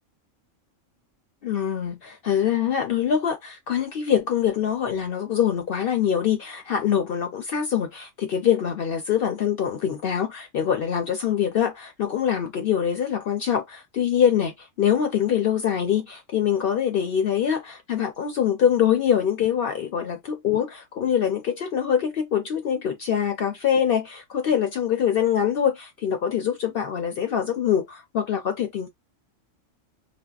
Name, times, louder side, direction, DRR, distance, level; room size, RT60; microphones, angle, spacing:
voice 1, 1.4-28.9, left 8 dB, 60° left, 0.6 m, -24 dB
3.4 x 2.1 x 2.3 m
omnidirectional pair, 1.3 m